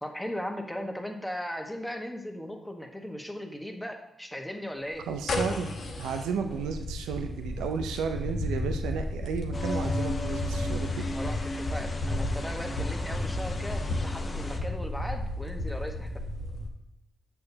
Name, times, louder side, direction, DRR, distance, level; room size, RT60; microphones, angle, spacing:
voice 1, 0.0-5.1 11.1-16.2, equal, 5° left, 3 dB, 1.3 m, -37 dB
sound 1, 5.0-16.7, left 1 dB, 65° left, 1.0 m, -33 dB
voice 2, 5.1-11.2, right 6 dB, 85° right, 6 dB, 0.5 m, -33 dB
sound 2, 9.5-14.6, left 2 dB, 45° left, 0.9 m, -34 dB
6.7 x 6.4 x 2.8 m, 0.85 s
supercardioid pair, 45°, 0 cm